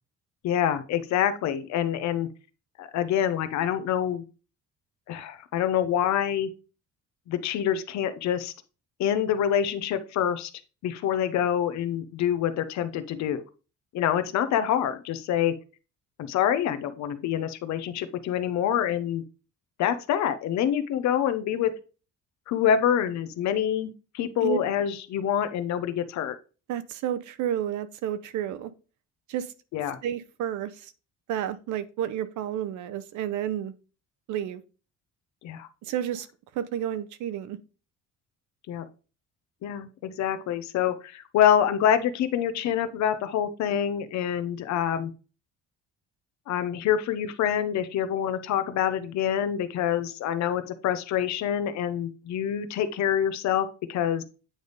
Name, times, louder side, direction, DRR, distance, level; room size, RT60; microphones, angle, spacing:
voice 1, 0.4-2.3 2.8-4.2 5.1-6.5 7.3-8.5 9.0-10.5 10.8-13.4 13.9-15.5 16.2-19.2 19.8-21.7 22.5-26.3 29.7-30.0 35.4-35.7 38.7-38.8 39.6-45.1 46.5-54.2, left 9 dB, 65° left, 0.8 m, -26 dB
voice 2, 26.7-28.7 29.3-29.5 30.0-30.9 31.3-33.7 34.3-34.6 35.8-36.3 36.5-37.6, right 10 dB, 70° right, 0.7 m, -31 dB
8.9 x 3.4 x 4.0 m
cardioid pair, 180°, 30 cm